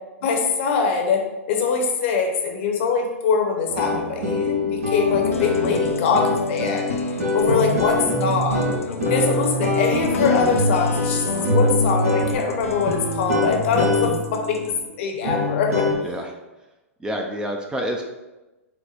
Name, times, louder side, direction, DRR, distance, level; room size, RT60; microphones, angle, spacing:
voice 1, 0.2-1.2 1.5-6.9 7.3-8.8 9.1-15.9, left 5 dB, 55° left, 2 dB, 0.8 m, -23 dB
sound 1, 3.7-16.0, left 2 dB, 85° right, 1.0 m, -24 dB
sound 2, 5.2-14.7, left 4 dB, 85° left, 0.5 m, -31 dB
voice 2, 7.5-7.8 11.3-11.5 16.0-16.3 17.0-18.1, equal, 10° right, 2 dB, 0.4 m, -29 dB
4.4 x 2.1 x 4.1 m, 1.1 s
hypercardioid pair, 115°, 8 cm